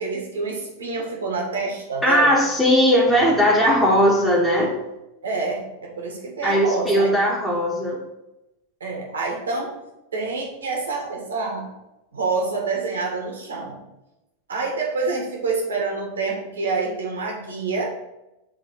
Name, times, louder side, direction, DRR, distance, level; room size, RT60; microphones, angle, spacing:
voice 1, 0.0-2.3 5.2-7.1 8.8-9.7 10.1-11.7 12.1-13.8 14.5-17.9, right 3 dB, 70° right, 0 dB, 1.8 m, -27 dB
voice 2, 2.0-4.7 6.4-8.0, equal, ahead, -5 dB, 1.5 m, -18 dB
7.3 x 3.7 x 5.5 m, 0.95 s
figure-of-eight pair, 90°, 0 cm